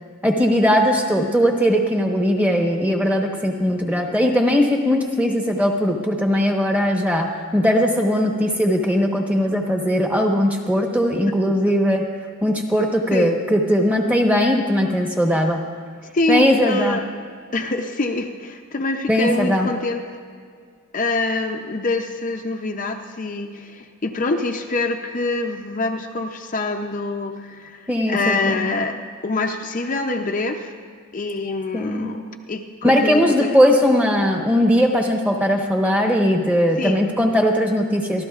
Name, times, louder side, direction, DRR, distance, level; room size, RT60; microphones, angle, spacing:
voice 1, 0.2-12.1 12.4-15.6 16.3-17.0 19.1-19.7 27.9-28.7 31.7-32.2 32.8-38.2, equal, 5° right, 1 dB, 1.1 m, -19 dB
voice 2, 16.1-17.0 17.5-20.0 20.9-30.7 31.1-33.6 36.8-37.0, left 2 dB, 35° left, 3 dB, 0.5 m, -25 dB
27.0 x 12.5 x 2.4 m, 2.1 s
head